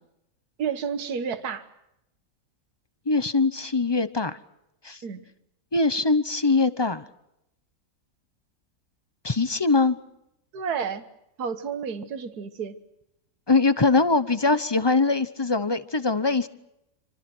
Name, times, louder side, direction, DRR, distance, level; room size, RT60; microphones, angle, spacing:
voice 1, 0.6-1.7 5.0-5.2 10.5-11.0 11.4-12.8, right 6 dB, 75° right, 10 dB, 1.9 m, -30 dB
voice 2, 3.1-4.4 4.8-5.0 5.7-7.0 9.2-10.0 13.5-16.5, left 3 dB, 20° left, 13 dB, 0.7 m, -22 dB
27.0 x 26.0 x 6.2 m, 0.83 s
omnidirectional pair, 1.7 m